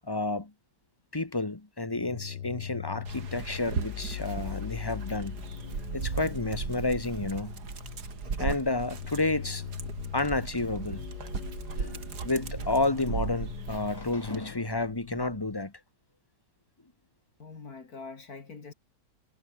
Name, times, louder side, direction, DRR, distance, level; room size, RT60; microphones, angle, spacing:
voice 1, 0.0-0.5 1.1-5.4 5.9-7.6 8.4-9.7 10.1-11.0 11.8-15.7, left 2 dB, 15° left, 1.2 m, -30 dB
sound 1, 1.9-15.6, left 9 dB, 70° left, 1.7 m, -41 dB
Dog, 3.0-14.4, right 6 dB, 65° right, 2.4 m, -37 dB
voice 2, 17.4-18.7, left 4 dB, 55° left, 2.9 m, -44 dB
omnidirectional pair, 1.9 m